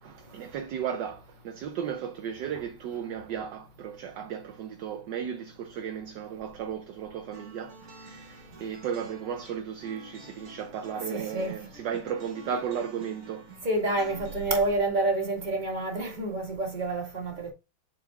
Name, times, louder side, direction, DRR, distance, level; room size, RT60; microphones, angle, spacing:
voice 1, 0.0-13.5, right 8 dB, 70° right, 1.2 m, -35 dB
sound 1, 7.3-14.5, right 1 dB, 40° right, 1.4 m, -49 dB
voice 2, 11.1-11.5 13.6-17.5, right 2 dB, 20° right, 1.9 m, -28 dB
7.5 x 4.5 x 3.4 m
omnidirectional pair, 2.3 m